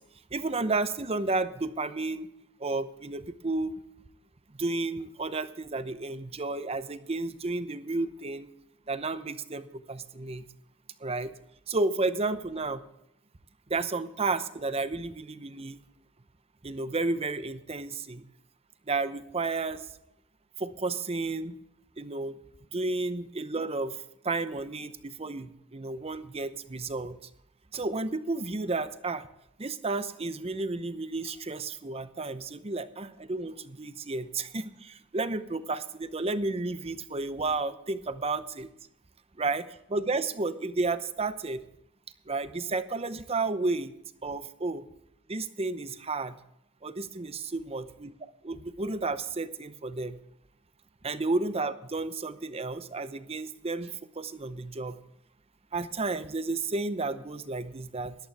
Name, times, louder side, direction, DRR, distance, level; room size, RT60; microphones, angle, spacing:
voice 1, 0.3-2.3 2.6-3.7 4.6-8.5 8.9-10.5 11.0-11.3 11.7-12.8 13.7-15.8 16.6-18.2 18.9-19.8 20.6-21.5 22.0-22.3 22.7-24.0 24.2-27.2 27.7-29.3 29.6-38.7 39.4-41.6 42.3-43.9 44.2-44.8 45.3-46.4 46.8-48.1 48.4-50.2 51.0-55.0 55.7-58.1, right 3 dB, 30° right, 12 dB, 0.7 m, -32 dB
14.0 x 11.5 x 3.4 m, 0.81 s
head